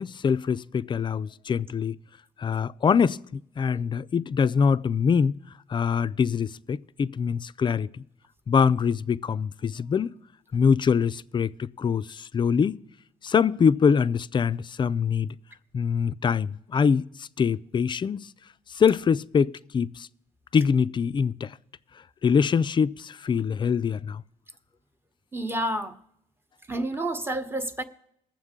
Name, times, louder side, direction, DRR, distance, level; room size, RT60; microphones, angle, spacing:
voice 1, 0.0-2.0 2.4-5.3 5.7-8.0 8.5-10.1 10.5-12.8 13.2-15.3 15.7-18.3 18.7-20.1 20.5-21.5 22.2-24.2, left 6 dB, 35° left, 0.3 m, -24 dB
voice 2, 25.3-26.0 26.7-27.8, right 1 dB, 15° right, 0.9 m, -29 dB
20.5 x 7.3 x 3.7 m
cardioid pair, 85°, 14 cm